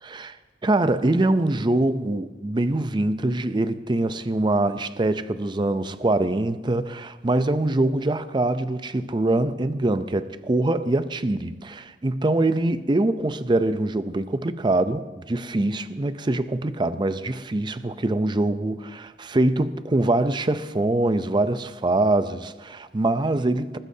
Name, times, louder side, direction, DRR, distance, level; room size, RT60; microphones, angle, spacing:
voice 1, 0.0-0.4 0.6-23.8, right 2 dB, 25° right, 0.5 m, -24 dB
20.0 x 14.5 x 2.7 m
head